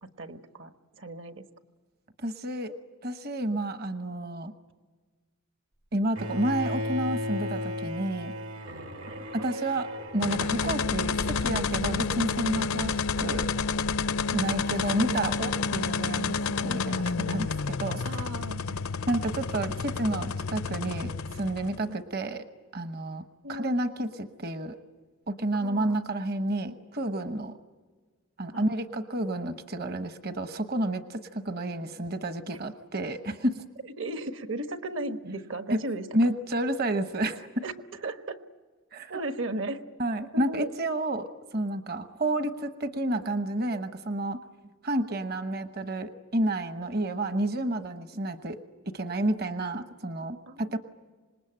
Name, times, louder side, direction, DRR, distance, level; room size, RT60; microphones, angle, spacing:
voice 1, 0.0-0.7 1.0-1.4 9.1-9.6 15.0-15.2 18.0-18.8 21.9-22.0 23.4-23.7 25.5-26.0 28.5-28.7 34.0-36.1 37.6-38.4 39.1-39.8 40.3-40.7 50.5-50.8, right 2 dB, 60° right, 8 dB, 1.3 m, -36 dB
voice 2, 2.2-2.7 3.0-4.5 5.9-8.3 9.3-13.5 14.3-16.4 16.6-18.0 19.1-22.4 22.7-23.2 23.5-24.8 25.3-27.6 28.4-33.6 35.7-35.8 36.1-37.6 38.9-39.2 40.0-44.4 44.8-48.6 48.9-50.8, right 1 dB, 45° right, 9 dB, 1.1 m, -30 dB
Bowed string instrument, 6.2-12.2, left 1 dB, 80° right, 2.1 m, -36 dB
sound 1, 10.2-21.9, left 4 dB, 85° left, 0.7 m, -30 dB
26.5 x 20.5 x 8.9 m, 1.4 s
head